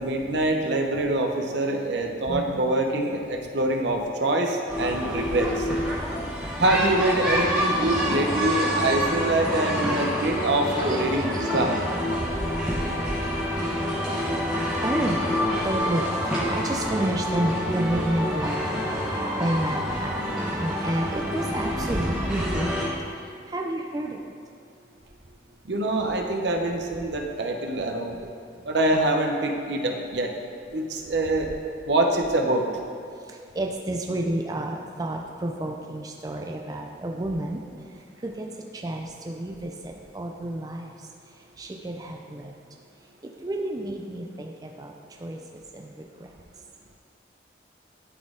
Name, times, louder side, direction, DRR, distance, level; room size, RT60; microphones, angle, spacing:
voice 1, 0.0-5.6 6.6-11.8 25.7-28.2 28.7-30.3 30.7-31.5 31.9-32.7, right 1 dB, 75° right, 3 dB, 0.7 m, -25 dB
voice 2, 1.7-2.6 3.4-3.5 9.3-9.4 10.1-18.9 19.4-20.3 20.6-24.2 33.2-37.6 38.2-38.5 38.7-40.9 41.6-42.5 43.4-46.3, right 1 dB, 20° right, 1 dB, 0.4 m, -32 dB
sound 1, 4.7-22.8, equal, 5° right, 1.2 m, -27 dB
12.0 x 4.1 x 3.7 m, 2.3 s
head